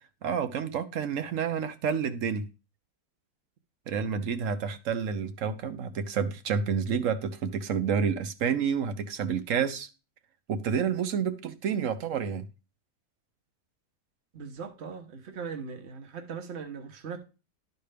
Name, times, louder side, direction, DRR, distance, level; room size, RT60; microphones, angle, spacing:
voice 1, 0.2-2.4 3.9-9.9 10.5-12.5, right 7 dB, 65° right, 1.0 m, -29 dB
voice 2, 14.3-17.2, right 6 dB, 50° right, 1.3 m, -39 dB
11.5 x 4.4 x 3.3 m
omnidirectional pair, 1.6 m